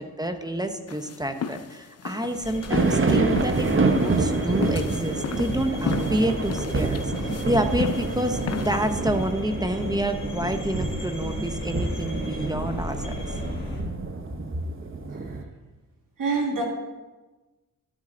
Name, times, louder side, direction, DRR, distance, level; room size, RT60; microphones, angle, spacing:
voice 1, 0.0-8.4 8.6-13.1, right 1 dB, 10° right, 7 dB, 0.9 m, -28 dB
sound 1, 0.9-9.3, left 7 dB, 45° left, 0.6 m, -35 dB
sound 2, 2.4-13.8, left 1 dB, 25° left, 3.9 m, -36 dB
sound 3, 2.7-15.4, right 3 dB, 35° right, 1.0 m, -27 dB
voice 2, 16.2-16.6, right 3 dB, 70° right, 1 dB, 2.1 m, -27 dB
12.5 x 7.6 x 3.9 m, 1.2 s
cardioid pair, 65°, 34 cm